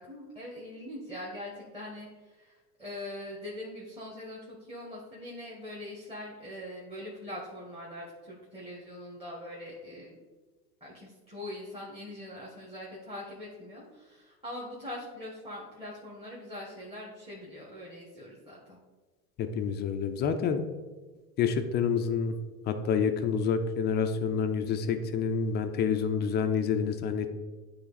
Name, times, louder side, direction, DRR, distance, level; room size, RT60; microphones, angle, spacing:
voice 1, 0.0-10.2 10.8-18.8, left 1 dB, 10° right, -5 dB, 1.4 m, -42 dB
voice 2, 19.4-20.6 21.4-22.3 22.7-27.3, left 6 dB, 25° left, 7 dB, 0.4 m, -28 dB
9.5 x 3.2 x 4.0 m, 1.3 s
hypercardioid pair, 100°, 47 cm